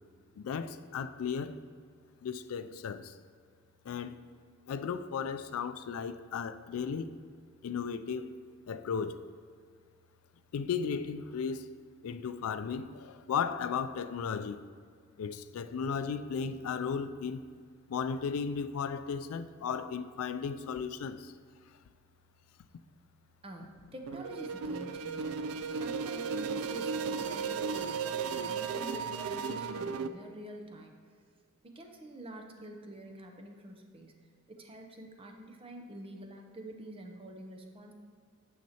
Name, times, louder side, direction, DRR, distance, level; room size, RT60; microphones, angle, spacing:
voice 1, 0.4-1.6 2.2-3.1 3.9-4.3 4.7-7.1 7.6-8.3 8.7-9.2 10.5-11.7 12.0-14.6 15.2-17.4 17.9-21.3 25.6-25.8, left 6 dB, 90° left, 0.3 m, -35 dB
voice 2, 23.4-31.0 31.6-34.2 34.5-37.9, right 1 dB, 25° right, 0.7 m, -47 dB
sound 1, 24.1-30.1, right 5 dB, 90° right, 0.3 m, -35 dB
9.1 x 6.5 x 2.9 m
head